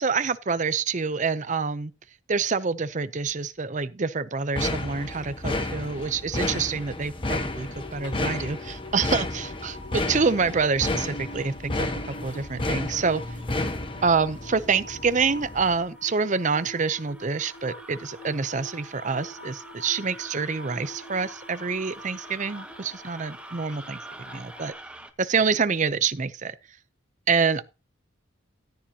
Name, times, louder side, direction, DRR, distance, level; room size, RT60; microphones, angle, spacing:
voice 1, 0.0-1.9 2.3-9.8 10.1-13.2 14.0-24.0 24.3-24.7 25.2-26.6 27.3-27.6, right 5 dB, 35° right, 0.6 m, -26 dB
sound 1, 4.5-15.9, left 2 dB, 25° left, 1.1 m, -32 dB
sound 2, 7.4-24.7, left 1 dB, 55° left, 3.5 m, -45 dB
sound 3, 15.3-25.1, right 1 dB, 5° right, 0.9 m, -46 dB
14.0 x 9.9 x 2.8 m
head